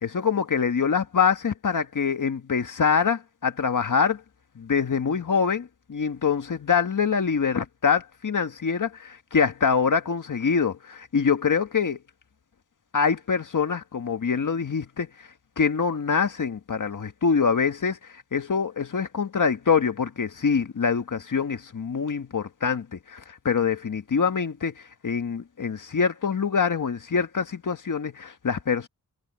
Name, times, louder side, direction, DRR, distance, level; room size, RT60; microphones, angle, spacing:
voice 1, 0.0-4.2 4.5-12.0 12.9-15.1 15.6-18.0 18.3-28.9, left 6 dB, 60° left, 1.6 m, -25 dB
wide cardioid pair, 100°, 35 cm